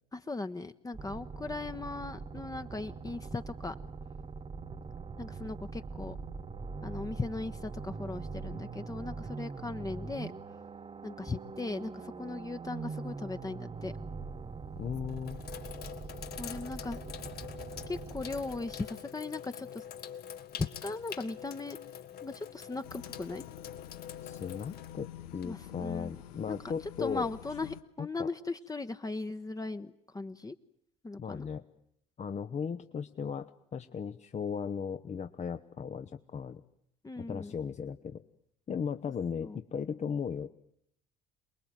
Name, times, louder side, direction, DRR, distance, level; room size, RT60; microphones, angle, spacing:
voice 1, 0.1-3.7 5.2-6.2 6.8-10.3 11.0-13.9 16.4-17.0 17.9-19.8 20.5-21.8 22.2-23.4 25.4-26.1 26.5-26.6 27.0-30.5 31.0-31.5 37.0-37.5 39.4-39.6, left 3 dB, 20° left, 9 dB, 1.2 m, -38 dB
sound 1, 0.9-19.0, right 4 dB, 30° right, 1.3 m, -43 dB
Sink (filling or washing), 13.8-14.2 14.8-25.8, left 9 dB, 55° left, 1.8 m, -45 dB
voice 2, 14.8-15.4 24.2-27.3 28.0-28.3 31.2-31.7 32.2-36.6 37.2-38.2 38.7-40.5, left 6 dB, 35° left, 9 dB, 1.1 m, -37 dB
sound 2, 22.8-27.8, left 11 dB, 75° left, 1.1 m, -48 dB
28.0 x 21.0 x 9.1 m, 0.75 s
hypercardioid pair, 55°, 19 cm